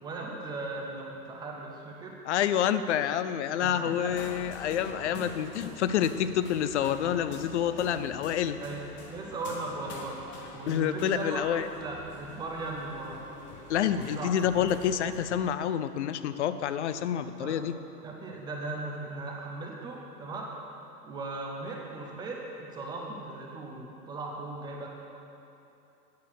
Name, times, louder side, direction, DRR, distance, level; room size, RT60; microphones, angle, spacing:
voice 1, 0.0-2.2 3.6-4.2 5.1-5.3 8.5-10.2 10.5-13.2 13.8-14.3 14.6-14.7 17.4-17.7 18.0-20.5 21.0-24.9, right 3 dB, 10° right, -1 dB, 0.5 m, -38 dB
voice 2, 2.3-8.6 10.7-11.7 13.7-17.8, left 9 dB, 50° left, 12 dB, 0.5 m, -28 dB
sound 1, 4.1-15.4, left 3 dB, 25° left, 1.1 m, -46 dB
9.4 x 6.8 x 6.3 m, 2.9 s
figure-of-eight pair, 100°, 48 cm